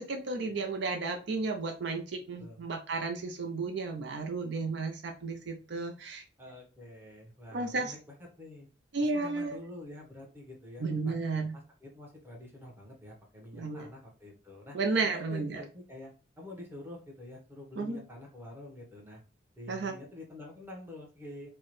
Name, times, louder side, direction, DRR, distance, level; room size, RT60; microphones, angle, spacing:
voice 1, 0.0-6.2 7.5-7.9 8.9-9.6 10.8-11.5 13.5-13.9 14.7-15.6 17.8-18.0 19.7-19.9, right 3 dB, 60° right, 4 dB, 0.5 m, -33 dB
voice 2, 2.4-2.7 6.4-8.7 9.1-11.2 11.5-14.8 15.0-19.2 19.6-21.5, left 1 dB, 10° right, -2 dB, 1.0 m, -47 dB
4.5 x 2.1 x 3.0 m, 0.35 s
head